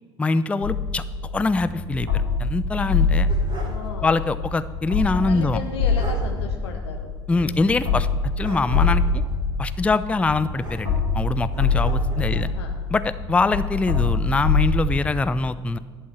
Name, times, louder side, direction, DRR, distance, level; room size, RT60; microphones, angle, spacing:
voice 1, 0.2-1.0 1.3-3.3 4.0-5.6 7.3-8.1 8.4-9.2 9.6-12.5 12.9-15.8, left 3 dB, 10° left, 13 dB, 0.3 m, -23 dB
sound 1, 0.6-15.0, left 4 dB, 80° right, 1.8 m, -25 dB
sound 2, 2.9-3.9 4.2-4.3 5.6-5.7 6.0-6.3 8.4-9.1 10.6-11.2 11.5-12.3, right 1 dB, 35° right, 2.4 m, -39 dB
voice 2, 3.6-4.3 5.3-7.6 12.3-12.7, left 6 dB, 70° left, 2 dB, 0.7 m, -35 dB
11.0 x 4.6 x 8.0 m, 1.5 s
figure-of-eight pair, 55°, 14 cm